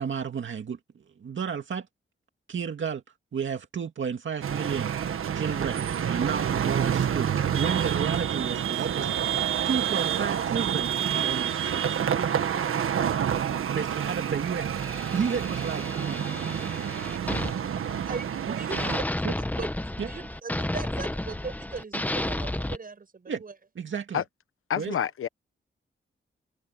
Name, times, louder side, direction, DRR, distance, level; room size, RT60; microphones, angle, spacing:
voice 1, 0.0-1.9 2.5-3.0 3.3-4.9 5.3-12.0 13.7-14.7 15.1-16.4 16.6-16.9 17.3-17.4 18.0-18.1 19.2-19.3 20.0-20.1 23.3-23.4 23.8-24.2 24.8-24.9, right 6 dB, 65° right, 2.2 m, -32 dB
sound 1, 4.4-19.0, right 8 dB, 90° right, 1.5 m, -28 dB
sound 2, 14.7-18.4 18.7-22.8, left 1 dB, 10° left, 0.9 m, -32 dB
voice 2, 18.1-23.5, right 4 dB, 45° right, 6.5 m, -39 dB
voice 3, 24.7-25.3, left 9 dB, 80° left, 1.0 m, -27 dB
wide cardioid pair, 100°, 21 cm